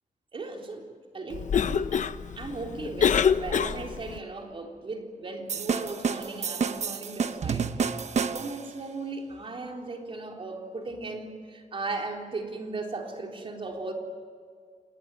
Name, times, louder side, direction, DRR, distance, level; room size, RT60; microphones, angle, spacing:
voice 1, 0.3-2.0 2.4-13.9, right 3 dB, 45° right, 2 dB, 3.7 m, -37 dB
Cough, 1.3-4.2, left 7 dB, 70° left, 0.8 m, -26 dB
sound 1, 5.5-8.7, right 6 dB, 60° right, 1.0 m, -29 dB
28.0 x 20.0 x 9.7 m, 2.1 s
wide cardioid pair, 165°, 13 cm